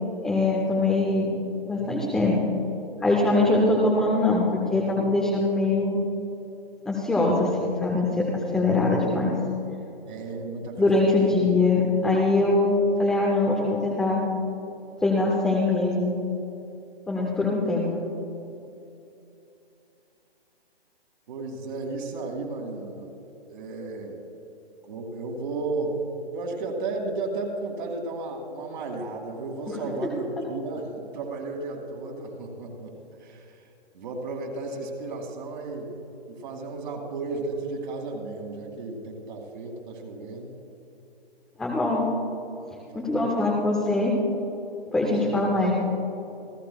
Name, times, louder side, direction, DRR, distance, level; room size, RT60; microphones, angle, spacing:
voice 1, 0.2-1.3 1.6-2.4 3.0-6.0 6.8-8.3 8.5-9.3 10.8-14.2 15.0-16.1 17.1-17.9 41.6-42.1 42.9-44.1 44.9-45.7, left 2 dB, ahead, -3 dB, 0.5 m, -22 dB
voice 2, 10.1-11.3 21.3-23.1 23.5-24.2 24.9-26.0 26.3-32.9 33.2-33.6 33.9-35.9 36.3-40.6 42.9-43.4 45.2-45.4, right 3 dB, 50° right, 1 dB, 2.4 m, -34 dB
28.5 x 13.0 x 2.3 m, 2.8 s
hypercardioid pair, 145°, 31 cm